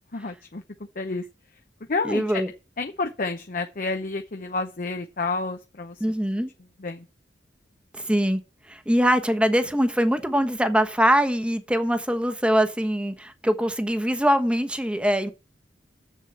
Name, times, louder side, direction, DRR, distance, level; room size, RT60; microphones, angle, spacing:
voice 1, 0.1-1.3 1.9-2.4 2.8-6.0 6.8-7.1, left 3 dB, 50° left, 0.8 m, -30 dB
voice 2, 2.0-2.5 6.0-6.5 8.0-8.4 8.7-15.3, equal, 5° right, 1.1 m, -23 dB
7.3 x 7.3 x 7.7 m
head